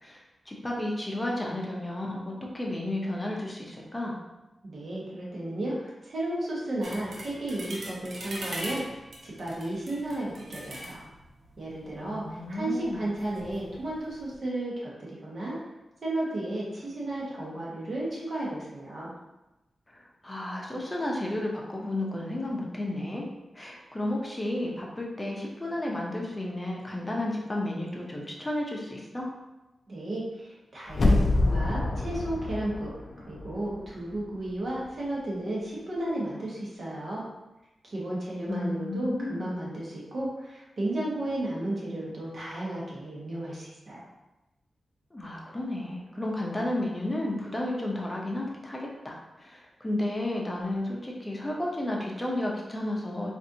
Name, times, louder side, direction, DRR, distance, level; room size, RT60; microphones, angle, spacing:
voice 1, 0.0-4.2 12.0-13.0 19.9-23.3 23.5-29.3 38.5-39.6 45.1-53.3, left 1 dB, 15° left, -2 dB, 0.7 m, -32 dB
voice 2, 4.6-8.8 9.2-11.0 11.6-12.2 12.5-15.6 16.0-19.1 29.9-32.9 33.3-37.2 37.8-44.0, right 1 dB, 50° right, -5 dB, 1.1 m, -33 dB
sound 1, 6.8-14.4, right 1 dB, 75° right, 0.6 m, -43 dB
sound 2, 30.9-33.8 34.2-34.3, left 2 dB, 50° left, 0.4 m, -26 dB
4.1 x 2.6 x 2.7 m, 1.0 s
wide cardioid pair, 105°, 0 cm